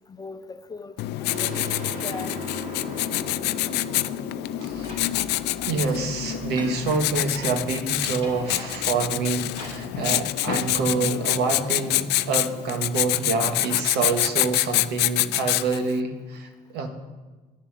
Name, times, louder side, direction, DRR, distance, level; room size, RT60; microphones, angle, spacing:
voice 1, 0.1-0.9 1.2-2.4, left 3 dB, 25° left, 9 dB, 0.9 m, -39 dB
Writing, 1.0-15.9, left 15 dB, 80° left, 0.5 m, -26 dB
sound 1, 1.3-6.8, right 1 dB, 55° right, 4.7 m, -39 dB
voice 2, 4.6-5.1 5.7-16.9, right 4 dB, 80° right, 6 dB, 1.7 m, -27 dB
sound 2, 4.7-10.9, equal, 35° right, 4.0 m, -43 dB
10.5 x 7.1 x 9.5 m, 1.3 s
cardioid pair, 110°, 17 cm